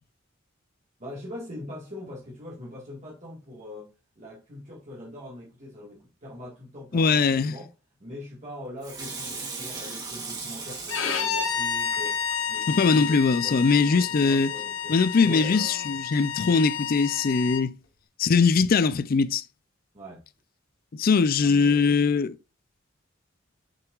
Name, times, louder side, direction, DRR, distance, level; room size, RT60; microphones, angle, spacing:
voice 1, 1.0-7.7 8.0-16.0 19.9-20.2 21.4-22.0, left 1 dB, 40° right, 1.8 m, -42 dB
voice 2, 6.9-7.5 12.7-14.5 14.9-17.8 18.2-19.4 20.9-22.3, left 5 dB, 50° left, 0.4 m, -21 dB
Water tap faucet / Sink (filling or washing), 8.8-12.6 13.1-13.2, right 4 dB, 20° right, 2.3 m, -38 dB
Bowed string instrument, 10.9-17.6, left 7 dB, 85° left, 1.5 m, -30 dB
6.7 x 5.9 x 2.4 m
head